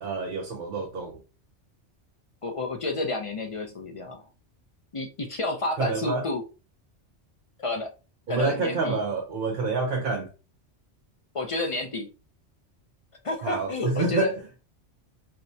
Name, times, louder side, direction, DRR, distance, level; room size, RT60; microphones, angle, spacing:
voice 1, 0.0-1.2 5.8-6.2 8.3-10.3 13.4-14.3, right 4 dB, 55° right, 0.7 m, -27 dB
voice 2, 2.4-4.2 4.9-6.4 7.6-7.9 8.3-9.0 11.3-12.1 13.2-14.3, left 2 dB, 50° left, 0.4 m, -30 dB
4.3 x 2.1 x 2.6 m
omnidirectional pair, 1.2 m